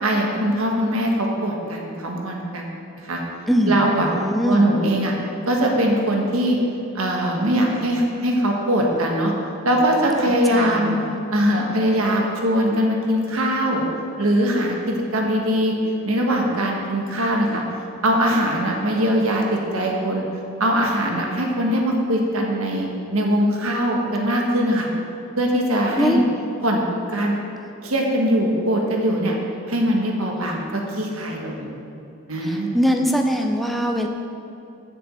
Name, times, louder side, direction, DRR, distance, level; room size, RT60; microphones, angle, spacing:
voice 1, 0.0-1.1 1.4-2.7 3.0-3.2 3.7-4.1 4.5-5.1 5.5-6.6 6.9-9.3 9.6-11.0 11.3-13.8 14.2-15.7 16.0-17.6 18.0-20.2 20.6-24.9 25.4-26.2 26.6-26.8 27.1-27.3 27.8-29.3 29.7-30.6 30.9-31.7 32.3-32.8, equal, 75° right, 0 dB, 1.5 m, -21 dB
voice 2, 3.5-4.7 10.3-11.2 26.0-26.2 32.4-34.1, equal, ahead, 3 dB, 0.6 m, -22 dB
7.1 x 7.0 x 7.5 m, 2.7 s
head